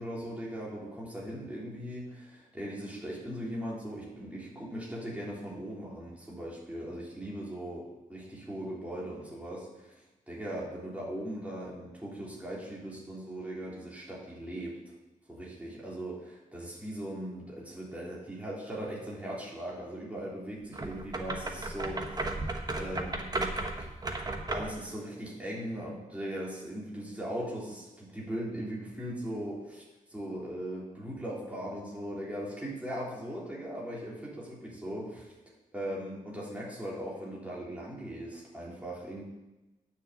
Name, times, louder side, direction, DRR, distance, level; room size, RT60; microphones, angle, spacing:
voice 1, 0.0-10.0 10.3-14.9 15.3-22.3 22.7-23.5 24.5-35.3 35.7-39.2, right 1 dB, 10° right, -6 dB, 3.6 m, -39 dB
sound 1, 20.7-24.8, right 2 dB, 25° right, 1.1 m, -35 dB
9.7 x 6.4 x 8.1 m, 1.0 s
wide cardioid pair, 145°, 15 cm